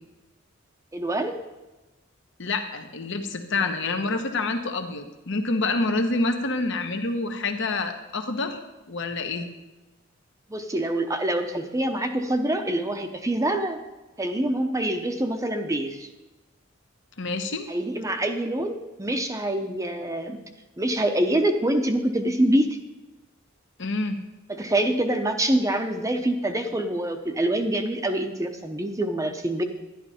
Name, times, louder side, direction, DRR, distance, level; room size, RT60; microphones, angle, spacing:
voice 1, 0.9-1.4 3.6-3.7 10.5-13.8 14.2-16.1 17.7-20.4 20.8-22.7 24.5-29.6, right 1 dB, 15° right, 5 dB, 0.7 m, -25 dB
voice 2, 2.4-8.6 8.9-9.5 17.2-17.7 23.8-24.2, left 3 dB, 65° left, 6 dB, 1.2 m, -27 dB
11.5 x 11.0 x 4.3 m, 1.1 s
head